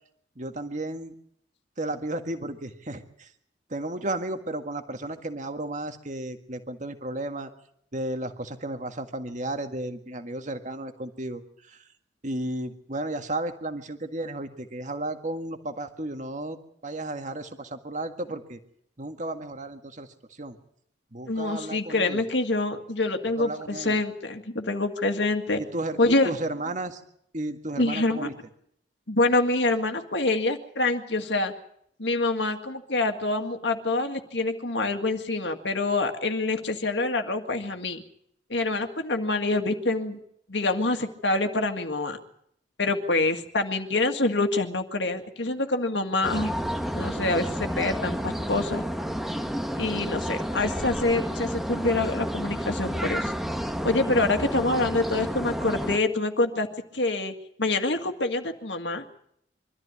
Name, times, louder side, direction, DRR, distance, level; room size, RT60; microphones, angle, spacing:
voice 1, 0.4-1.1 1.8-3.3 3.7-7.5 7.9-11.8 12.2-16.6 16.8-18.6 19.0-20.6 21.1-22.2 23.4-24.0 25.6-27.0 27.3-28.3, right 1 dB, 40° right, 7 dB, 1.8 m, -33 dB
voice 2, 21.3-25.6 26.0-26.3 27.8-28.3 29.1-31.5 32.0-38.0 38.5-40.2 40.5-42.2 42.8-46.5 46.9-48.8 49.8-53.3 53.8-56.7 56.9-57.3 57.6-59.0, left 2 dB, 70° left, 6 dB, 2.0 m, -26 dB
sound 1, 46.2-56.0, equal, ahead, 1.1 m, -30 dB
24.5 x 13.5 x 9.6 m, 0.71 s
head